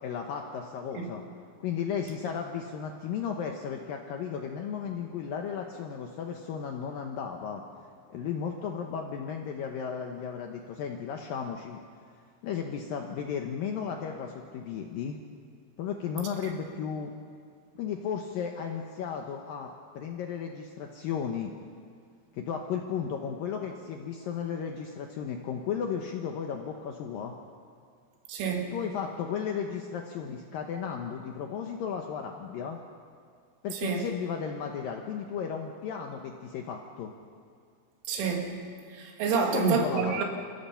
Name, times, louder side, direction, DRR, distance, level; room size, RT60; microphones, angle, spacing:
voice 1, 0.0-1.2 1.6-7.6 8.1-11.8 12.4-15.2 15.8-17.1 17.8-21.5 22.3-27.3 28.7-32.8 33.6-37.1 39.3-40.2, left 7 dB, 80° left, 2 dB, 2.0 m, -34 dB
voice 2, 28.3-28.7 33.7-34.0 38.1-38.6 38.9-40.2, right 6 dB, 90° right, 2 dB, 4.5 m, -28 dB
29.0 x 16.0 x 5.7 m, 2.2 s
omnidirectional pair, 5.5 m